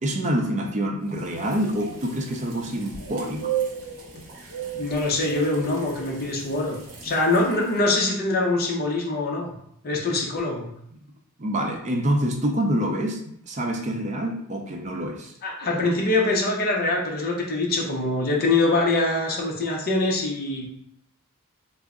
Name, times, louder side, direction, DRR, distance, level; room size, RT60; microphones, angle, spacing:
voice 1, 0.0-3.5 4.1-4.2 11.4-15.3, right 1 dB, 30° right, 2 dB, 0.5 m, -26 dB
sound 1, 1.2-7.8, right 8 dB, 80° right, 1.0 m, -35 dB
voice 2, 4.7-9.5 9.8-10.7 15.4-20.7, left 2 dB, 45° left, -1 dB, 0.6 m, -24 dB
3.4 x 2.0 x 3.5 m, 0.71 s
head